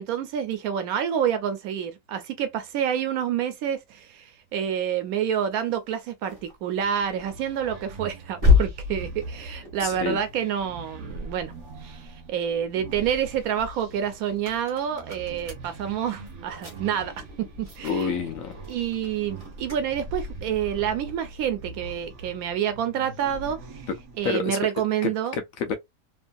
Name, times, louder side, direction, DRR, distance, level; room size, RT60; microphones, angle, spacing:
voice 1, 0.0-11.5 11.8-18.1 18.7-23.9 24.2-25.4, right 9 dB, 85° right, 1.1 m, -28 dB
sound 1, 5.5-12.1 12.5-22.3, left 4 dB, 25° right, 1.0 m, -31 dB
sound 2, 6.8-24.2, right 2 dB, 60° right, 1.2 m, -42 dB
voice 2, 9.8-10.2 17.8-18.6 24.2-24.6 25.0-25.7, left 5 dB, 75° left, 1.0 m, -28 dB
3.1 x 2.6 x 2.2 m
omnidirectional pair, 1.5 m